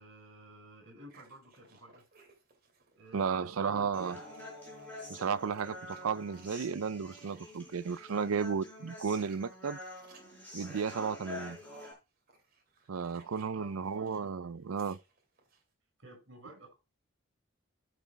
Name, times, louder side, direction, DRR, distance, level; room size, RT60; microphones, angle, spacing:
voice 1, 0.0-2.0 2.9-3.9 13.5-14.3 16.0-16.7, right 2 dB, 60° right, 5.9 m, -52 dB
sound 1, 1.1-3.4 3.8-8.2 8.8-14.3 14.6-15.6, right 4 dB, 45° right, 2.5 m, -62 dB
voice 2, 3.1-4.2 5.1-9.8 10.5-11.6 12.9-15.0, right 6 dB, 85° right, 0.5 m, -33 dB
Human voice, 3.9-11.9, left 1 dB, 5° left, 4.2 m, -47 dB
14.5 x 6.2 x 3.3 m
head